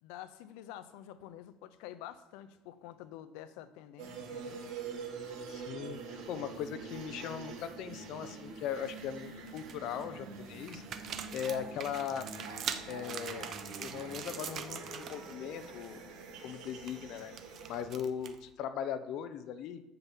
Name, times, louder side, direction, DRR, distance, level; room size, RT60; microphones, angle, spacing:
voice 1, 0.0-4.6, left 12 dB, 85° left, 12 dB, 0.8 m, -48 dB
sound 1, 4.0-17.8, right 5 dB, 85° right, 2.8 m, -45 dB
voice 2, 5.5-10.8 11.3-12.3 12.8-16.0 16.4-17.3 17.7-19.8, left 8 dB, 50° left, 11 dB, 0.8 m, -39 dB
sound 2, 8.5-9.0 9.4-10.0 10.6-15.3 15.6-15.9 16.2-18.5, right 8 dB, 35° right, 0.7 m, -43 dB
7.8 x 7.0 x 7.5 m, 0.95 s
cardioid pair, 175°, 0 cm